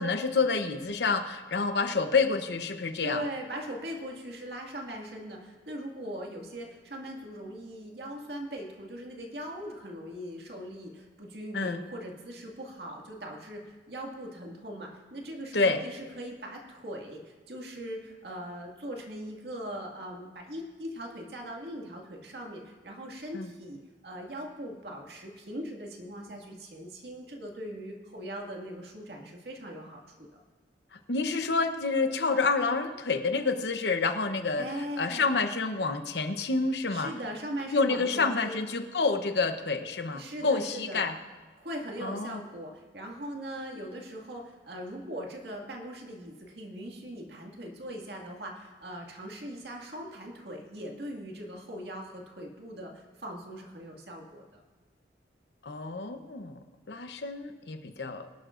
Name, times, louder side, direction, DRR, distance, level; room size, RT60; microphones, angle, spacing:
voice 1, 0.0-3.2 11.5-11.8 15.5-15.8 23.3-23.5 31.1-34.6 35.0-37.1 37.7-41.1 42.0-42.4 55.6-56.6 56.9-58.3, left 4 dB, 65° left, 7 dB, 0.9 m, -28 dB
voice 2, 3.0-30.3 34.6-35.3 36.9-38.7 40.1-41.2 41.6-54.6, equal, 60° right, 0 dB, 2.0 m, -40 dB
23.0 x 11.5 x 2.5 m, 1.4 s
head